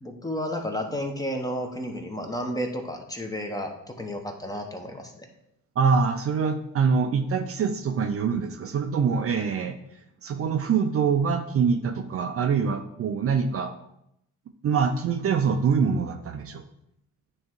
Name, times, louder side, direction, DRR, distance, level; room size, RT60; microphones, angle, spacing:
voice 1, 0.0-5.3, equal, 10° left, 3 dB, 1.1 m, -32 dB
voice 2, 5.8-9.8 10.2-13.7 14.6-16.6, right 6 dB, 45° right, 6 dB, 0.6 m, -24 dB
9.1 x 3.2 x 4.6 m, 0.80 s
cardioid pair, 105°, 32 cm